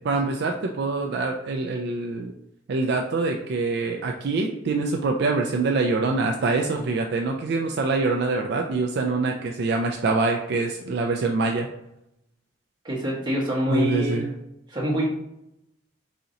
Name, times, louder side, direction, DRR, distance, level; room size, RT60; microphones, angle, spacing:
voice 1, 0.0-2.3 2.7-11.7 13.7-14.3, right 3 dB, 55° right, 3 dB, 0.3 m, -25 dB
voice 2, 12.8-14.3 14.7-15.1, equal, 25° right, -5 dB, 1.2 m, -25 dB
4.0 x 2.8 x 3.7 m, 0.83 s
head